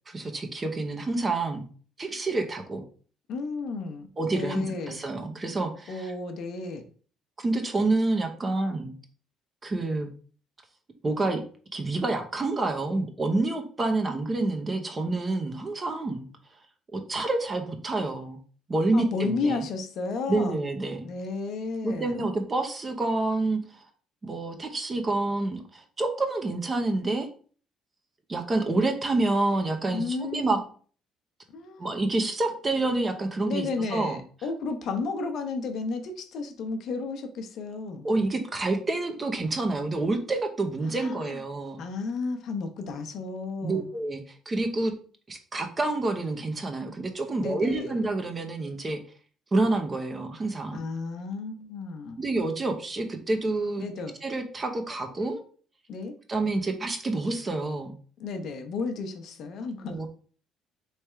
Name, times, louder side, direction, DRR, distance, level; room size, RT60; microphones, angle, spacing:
voice 1, 0.1-1.6 2.0-2.8 4.2-6.1 7.4-9.0 9.6-10.1 11.0-11.4 11.7-16.3 16.9-18.4 18.7-19.6 20.3-21.1 21.8-23.8 24.2-27.3 28.3-30.6 31.8-34.2 38.0-41.8 43.6-44.9 45.3-49.0 49.5-50.8 52.2-53.8 54.2-55.4 56.3-57.9 59.8-60.1, right 2 dB, 30° right, 5 dB, 0.9 m, -28 dB
voice 2, 3.3-5.0 5.9-6.8 18.9-20.6 21.0-22.3 29.9-30.5 31.5-31.9 33.4-38.1 40.8-41.4 41.8-43.9 47.4-48.0 50.7-52.2 53.8-54.2 55.9-56.1 58.2-60.0, left 4 dB, 65° left, 6 dB, 0.8 m, -33 dB
3.5 x 3.3 x 4.4 m, 0.42 s
cardioid pair, 90°, 0 cm